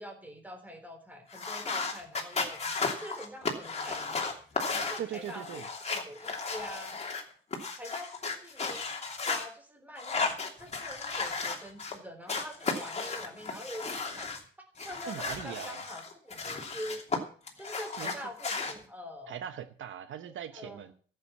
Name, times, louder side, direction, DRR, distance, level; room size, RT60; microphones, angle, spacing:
voice 1, 0.0-2.6 2.9-4.4 4.7-7.0 7.7-14.3 14.8-17.0 17.6-19.5 20.3-20.9, equal, 10° right, 5 dB, 3.8 m, -45 dB
sound 1, 1.3-9.4 10.0-12.0 12.3-14.4 14.8-17.2 17.5-18.7, left 4 dB, 30° left, 2.9 m, -34 dB
voice 2, 5.0-5.7 15.0-15.8 18.0-18.2 19.3-20.9, right 10 dB, 75° right, 10 dB, 1.0 m, -40 dB
14.0 x 8.0 x 7.2 m, 0.44 s
cardioid pair, 140°, 20 cm